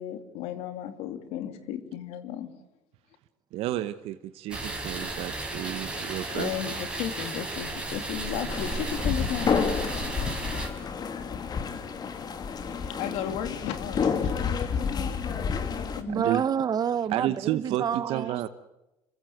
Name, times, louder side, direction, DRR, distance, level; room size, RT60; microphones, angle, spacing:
voice 1, 0.0-2.5 6.3-10.2 10.8-10.9 12.7-16.4, left 10 dB, 75° left, 2.6 m, -35 dB
voice 2, 3.5-6.5 16.1-16.4 17.1-18.5, right 14 dB, 65° right, 1.0 m, -31 dB
sound 1, 4.5-10.7, right 2 dB, 10° right, 5.2 m, -34 dB
sound 2, 8.5-16.0, left 6 dB, 40° left, 2.4 m, -30 dB
voice 3, 16.1-18.5, right 8 dB, 40° right, 1.1 m, -28 dB
26.5 x 15.0 x 9.4 m
supercardioid pair, 100°, 11 cm